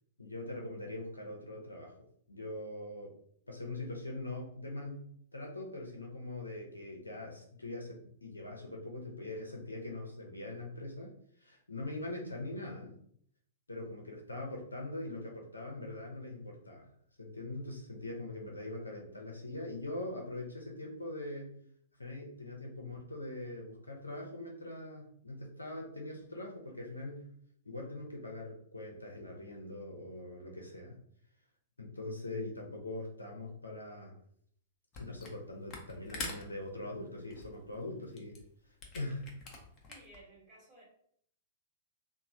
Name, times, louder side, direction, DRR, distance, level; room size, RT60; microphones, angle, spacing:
voice 1, 0.2-1.9 2.3-3.1 3.5-11.1 11.4-13.0 13.7-16.9 17.2-21.6 22.0-27.3 27.6-31.0 31.8-34.1 35.0-38.4 38.9-39.3, left 2 dB, 85° left, 0 dB, 0.5 m, -42 dB
Camera, 34.9-35.4 35.7-40.2, left 3 dB, 30° left, 0.6 m, -45 dB
voice 2, 39.9-40.8, right 1 dB, 25° right, -7 dB, 1.1 m, -56 dB
3.0 x 2.1 x 2.5 m, 0.65 s
figure-of-eight pair, 105°, 0 cm